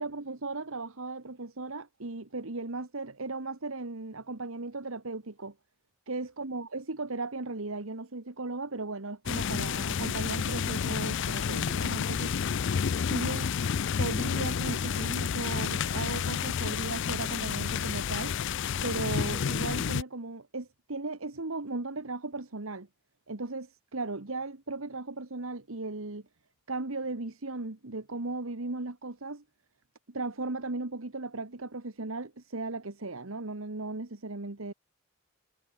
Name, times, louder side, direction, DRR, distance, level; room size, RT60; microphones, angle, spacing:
voice 1, 0.0-5.5 6.1-12.4 13.1-13.5 14.0-18.4 18.8-22.9 23.3-26.2 26.7-29.4 30.1-34.7, right 3 dB, 70° right, 1.5 m, -36 dB
sound 1, 9.3-20.0, left 7 dB, 55° left, 0.4 m, -30 dB
head